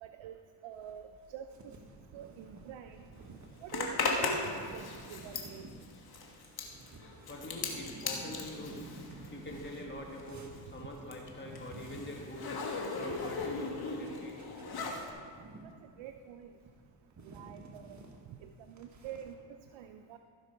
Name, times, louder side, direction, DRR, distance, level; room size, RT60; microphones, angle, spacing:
voice 1, 0.0-1.5 2.1-3.0 3.6-4.8 5.1-5.6 16.0-16.5 17.2-18.0 18.3-18.5 18.8-19.3 19.7-20.2, right 10 dB, 75° right, 7 dB, 0.6 m, -46 dB
sound 1, 0.7-19.3, right 2 dB, 40° right, 1.5 m, -53 dB
Zipper (clothing), 3.7-9.9 10.1-15.1, left 4 dB, 50° left, 1.6 m, -37 dB
voice 2, 7.3-8.9 9.3-12.5 12.9-14.3, left 1 dB, 25° left, -1 dB, 2.1 m, -44 dB
Boom, 7.3-10.5, right 2 dB, 15° right, 1.4 m, -50 dB
15.5 x 6.0 x 4.5 m, 2.2 s
cardioid pair, 75°, 46 cm